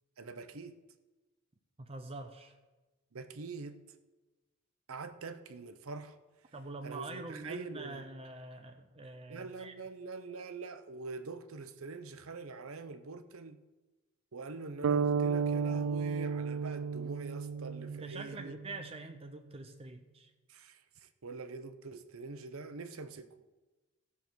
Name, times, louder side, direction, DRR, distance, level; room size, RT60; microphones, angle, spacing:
voice 1, 0.2-0.7 3.1-3.8 4.9-6.2 6.8-8.1 9.3-13.6 14.3-18.6 20.5-20.8 21.2-23.3, right 4 dB, 85° right, 0.8 m, -44 dB
voice 2, 1.8-2.6 6.5-9.7 17.9-20.3, right 3 dB, 30° right, 0.6 m, -45 dB
sound 1, 14.8-18.8, right 5 dB, 65° right, 0.3 m, -33 dB
15.5 x 7.0 x 4.6 m
head